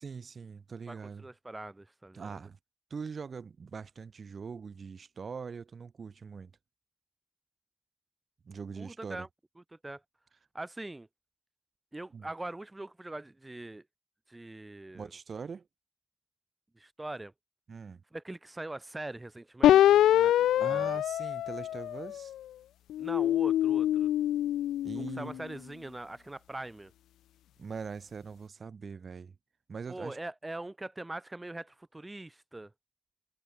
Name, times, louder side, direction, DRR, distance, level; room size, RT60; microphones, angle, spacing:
voice 1, 0.0-1.2 2.1-2.6 2.9-6.5 8.4-9.3 12.1-12.3 14.9-15.7 17.7-18.0 20.6-22.3 24.8-25.4 27.6-29.3 29.7-30.2, right 5 dB, 45° right, 6.7 m, -42 dB
voice 2, 0.9-2.4 8.8-9.3 9.7-10.0 10.5-11.1 11.9-13.8 14.3-15.1 16.8-17.3 18.1-21.0 23.0-24.1 24.9-26.9 29.9-32.7, right 2 dB, 15° right, 4.6 m, -42 dB
sound 1, 19.6-22.3 22.9-25.4, left 12 dB, 90° left, 0.7 m, -25 dB
cardioid pair, 80°, 0 cm